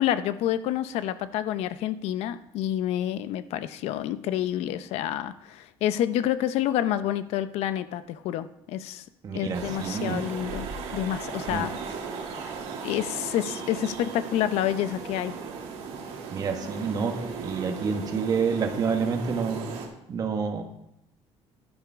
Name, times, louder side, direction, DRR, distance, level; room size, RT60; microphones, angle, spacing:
voice 1, 0.0-9.0 9.3-11.7 12.4-12.5 12.8-15.4, left 11 dB, 80° left, 13 dB, 0.6 m, -28 dB
voice 2, 9.2-10.2 11.5-11.7 16.3-17.1 17.4-19.7 20.1-20.6, right 5 dB, 35° right, 4 dB, 1.4 m, -28 dB
sound 1, 9.5-19.9, right 5 dB, 75° right, 2.3 m, -37 dB
11.5 x 9.9 x 3.6 m, 0.81 s
cardioid pair, 155°, 11 cm